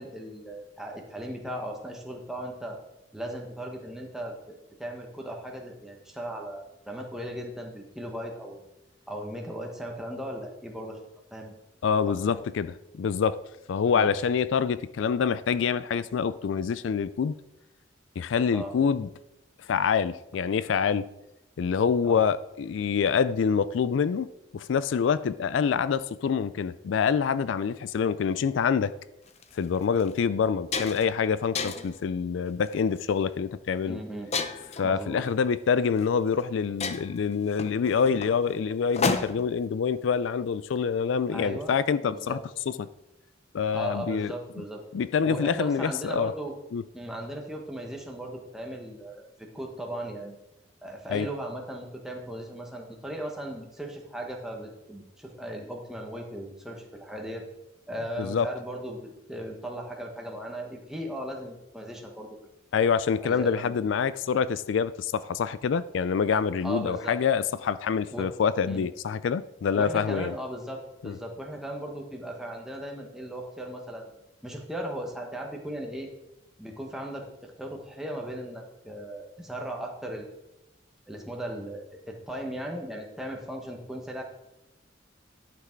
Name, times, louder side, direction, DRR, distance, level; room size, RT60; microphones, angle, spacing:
voice 1, 0.0-2.8 3.1-8.7 9.1-11.0 11.3-11.5 12.1-12.4 13.9-14.1 18.5-18.7 22.0-22.2 33.9-34.3 34.8-35.2 41.3-41.7 42.0-42.4 43.7-44.8 45.2-46.5 46.9-49.2 49.5-50.4 50.8-57.5 57.9-62.4 63.2-63.7 66.6-67.2 68.1-68.3 68.7-68.9 69.8-74.1 74.4-76.1 76.6-80.3 81.1-84.2, right 1 dB, 5° right, 1.3 m, -37 dB
voice 2, 11.8-13.4 13.7-17.4 18.2-19.1 19.7-21.1 21.6-28.9 29.5-34.0 34.8-42.4 42.7-42.9 43.5-44.3 44.9-46.3 46.7-46.8 51.1-51.3 58.2-58.5 62.7-70.3 71.0-71.2, left 6 dB, 80° left, 0.4 m, -26 dB
sound 1, 29.3-29.4 30.0-30.1 30.4-31.2 31.5-32.0 32.7-33.0 34.3-34.9 36.0-36.1 36.4-36.5 36.8-39.6, left 4 dB, 35° left, 0.6 m, -32 dB
11.5 x 5.9 x 4.5 m
head